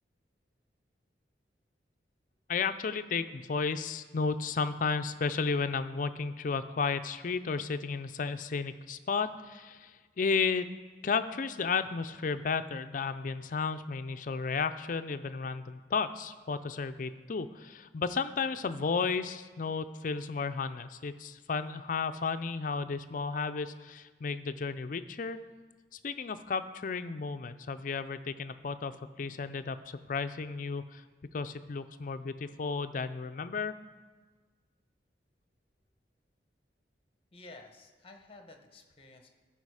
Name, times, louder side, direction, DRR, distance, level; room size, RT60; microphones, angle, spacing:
voice 1, 2.5-10.7 11.0-25.4 26.0-31.0 31.3-33.7, left 5 dB, 50° left, 11 dB, 0.5 m, -33 dB
voice 2, 37.3-39.3, left 2 dB, 30° left, 4 dB, 1.0 m, -52 dB
13.5 x 5.8 x 4.8 m, 1.4 s
head